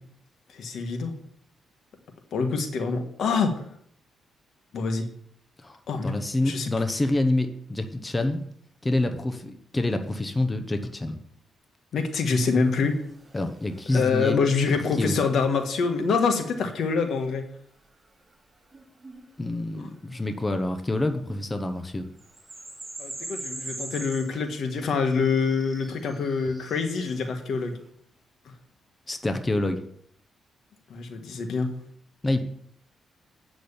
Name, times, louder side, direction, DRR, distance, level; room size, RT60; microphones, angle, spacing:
voice 1, 0.5-1.2 2.3-3.6 4.7-5.1 5.9-6.2 6.4-6.7 11.9-13.0 13.9-17.4 19.7-19.9 23.0-27.8 30.9-31.7, left 4 dB, 70° left, 6 dB, 1.5 m, -25 dB
voice 2, 5.6-8.4 8.8-11.2 13.3-14.4 15.0-15.2 19.4-22.0 29.1-29.8 32.2-32.4, left 2 dB, 20° left, 6 dB, 0.9 m, -27 dB
sound 1, 12.3-13.9 14.3-15.1 18.7-20.4 21.2-21.4 21.8-21.9 22.2-27.3, right 2 dB, 20° right, 3.3 m, -43 dB
8.4 x 6.1 x 7.1 m, 0.67 s
cardioid pair, 90°, 0 cm